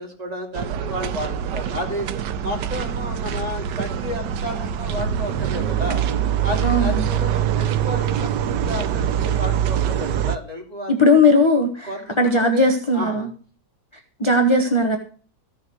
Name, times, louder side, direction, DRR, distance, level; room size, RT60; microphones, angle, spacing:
voice 1, 0.0-2.1 2.4-6.1 6.4-11.1 11.8-13.3, left 1 dB, 20° right, 0 dB, 3.2 m, -32 dB
sound 1, 0.5-10.4, right 9 dB, 80° right, 1.4 m, -24 dB
voice 2, 6.6-7.0 10.9-11.9 12.2-13.3 14.2-15.0, left 2 dB, 20° left, 5 dB, 1.1 m, -17 dB
15.5 x 6.9 x 6.2 m, 0.41 s
omnidirectional pair, 1.9 m